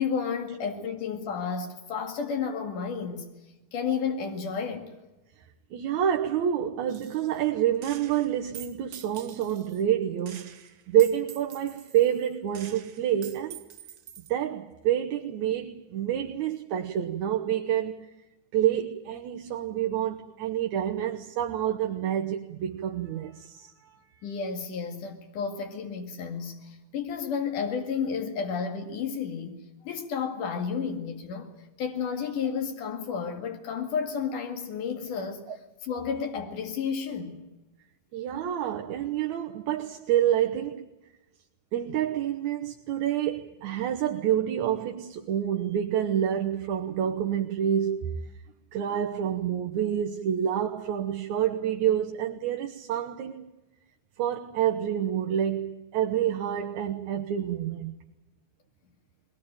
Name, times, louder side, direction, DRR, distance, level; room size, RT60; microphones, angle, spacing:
voice 1, 0.0-3.3 3.7-4.9 24.2-31.5 31.8-35.4 35.8-37.4, left 6 dB, 90° left, 3.7 m, -31 dB
voice 2, 5.7-13.6 14.3-18.1 18.5-24.2 35.5-35.6 38.1-40.9 41.7-48.2 48.7-53.4 54.2-58.0, right 10 dB, 70° right, 2.5 m, -28 dB
Gunshot gunfire, 6.9-7.4 7.8-9.8 10.3-14.3, right 9 dB, 55° right, 1.4 m, -46 dB
22.0 x 20.0 x 8.9 m
omnidirectional pair, 3.6 m